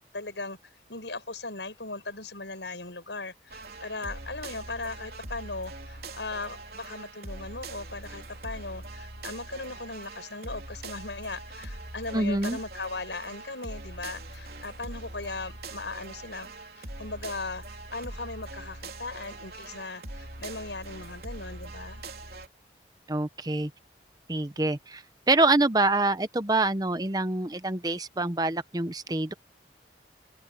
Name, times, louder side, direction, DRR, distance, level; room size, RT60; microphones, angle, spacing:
voice 1, 0.1-0.6 0.9-17.6 17.9-22.0, left 3 dB, 80° left, 7.1 m, -38 dB
sound 1, 3.5-22.5, right 2 dB, 60° right, 3.8 m, -42 dB
voice 2, 12.1-12.6 23.1-23.7 24.3-29.3, right 2 dB, 20° right, 0.8 m, -26 dB
open air
head